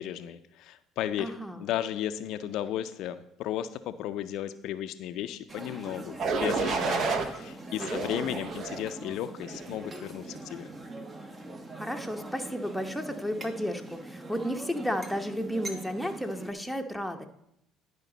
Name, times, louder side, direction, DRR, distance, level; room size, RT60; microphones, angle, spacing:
voice 1, 0.0-1.3 1.6-10.7, left 11 dB, 70° left, 11 dB, 0.4 m, -34 dB
voice 2, 1.2-1.7 7.8-8.4 11.7-17.3, equal, ahead, 7 dB, 1.0 m, -33 dB
sound 1, 5.5-16.5, right 2 dB, 25° right, 1.1 m, -43 dB
sound 2, 6.2-7.3 7.8-8.8 9.4-9.8, right 4 dB, 55° right, 1.0 m, -30 dB
10.5 x 5.0 x 3.9 m, 0.78 s
supercardioid pair, 75°, 0 cm